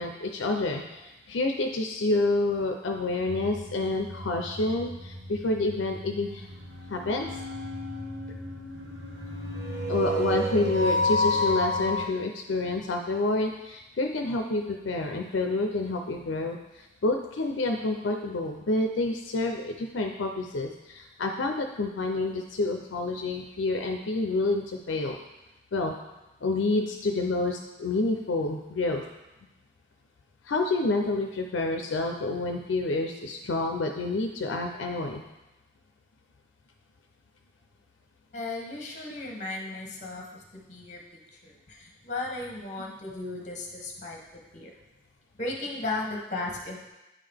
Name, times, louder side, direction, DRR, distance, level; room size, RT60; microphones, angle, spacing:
voice 1, 0.0-6.5 6.9-7.3 9.9-25.2 25.7-25.9 26.4-29.0 30.4-35.2 42.9-43.2, left 2 dB, 80° left, 3 dB, 0.5 m, -28 dB
sound 1, 3.3-12.0, left 1 dB, 65° right, 1.2 m, -31 dB
voice 2, 38.3-41.0 41.3-44.2 44.5-44.7 45.3-46.9, left 2 dB, 40° left, 0 dB, 1.0 m, -35 dB
8.4 x 3.7 x 3.4 m, 0.98 s
head